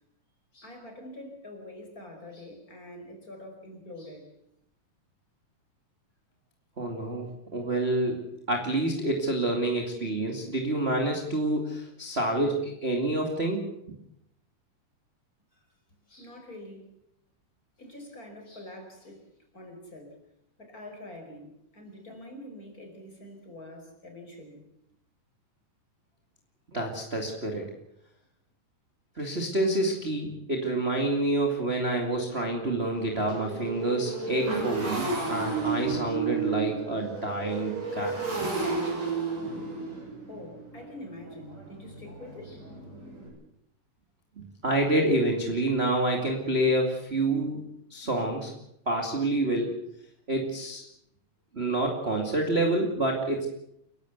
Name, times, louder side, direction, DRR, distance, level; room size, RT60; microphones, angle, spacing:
voice 1, 0.5-4.3 15.5-15.6 16.1-16.9 17.8-19.3 19.5-20.2 20.6-24.7 40.3-42.7, left 1 dB, 25° left, 3 dB, 5.3 m, -45 dB
voice 2, 6.8-8.2 8.5-14.0 26.7-27.7 29.2-38.2 44.4-47.6 47.9-48.5 48.9-49.7 50.3-50.8 51.5-53.5, right 1 dB, 20° right, 1 dB, 2.3 m, -28 dB
Motorcycle, 30.7-30.8 31.2-31.4 31.7-43.3, right 4 dB, 55° right, 8.2 m, -33 dB
30.0 x 12.0 x 8.2 m, 0.77 s
omnidirectional pair, 3.7 m